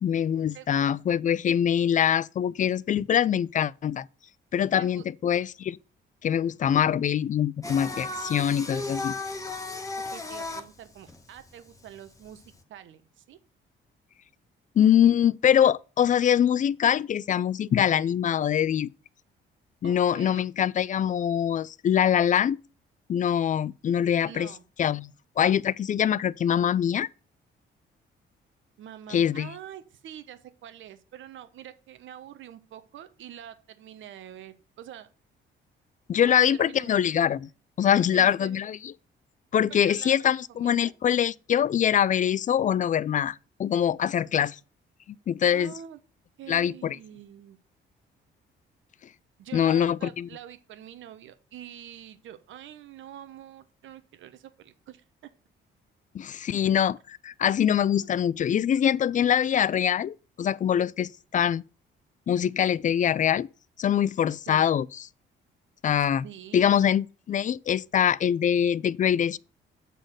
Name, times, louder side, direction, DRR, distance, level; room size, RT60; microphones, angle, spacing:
voice 1, 0.0-4.1 4.5-5.8 6.2-9.1 14.8-18.9 19.8-22.6 23.1-24.5 24.8-25.1 25.4-27.1 29.1-29.5 36.1-37.5 37.8-38.9 39.5-44.6 45.3-45.7 46.5-47.0 49.5-50.3 56.1-61.6 62.3-63.5 63.8-65.0 65.8-66.2 66.5-69.4, left 9 dB, 40° left, 0.4 m, -24 dB
voice 2, 0.5-0.9 4.8-5.1 10.1-12.4 12.7-13.4 19.8-20.5 24.2-24.6 28.8-35.1 36.2-37.0 38.1-38.6 39.7-40.8 45.4-46.0 46.4-47.6 49.4-55.0 64.5-64.7 66.2-66.7, right 11 dB, 75° right, 1.1 m, -45 dB
Singing, 7.6-12.6, left 2 dB, 15° left, 1.4 m, -35 dB
7.9 x 4.1 x 6.4 m
cardioid pair, 90°, 20 cm